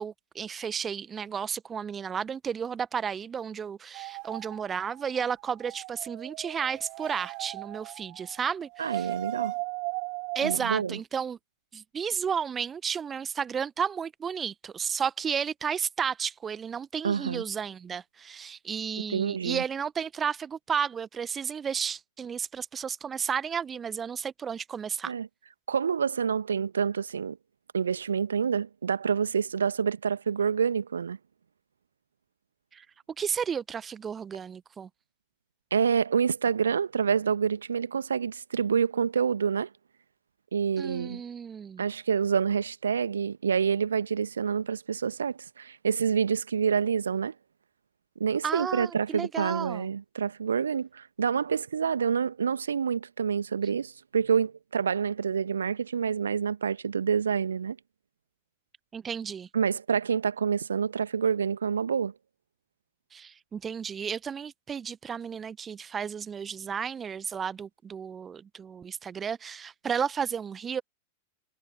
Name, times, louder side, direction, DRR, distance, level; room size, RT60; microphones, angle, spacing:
voice 1, 0.0-9.1 10.3-11.4 11.7-25.1 32.7-32.8 33.2-34.9 40.8-41.8 48.4-49.9 58.9-59.5 63.1-70.8, right 7 dB, 20° right, 0.9 m, -33 dB
sound 1, 3.9-10.6, right 36 dB, 45° right, 2.8 m, -38 dB
voice 2, 8.8-9.5 10.4-11.0 17.0-17.4 19.1-19.6 25.1-25.3 25.7-27.4 27.7-31.2 35.7-39.7 40.5-41.2 41.8-47.3 48.2-57.8 59.5-62.1, right 6 dB, 70° right, 1.4 m, -27 dB
figure-of-eight pair, 90°, 0 cm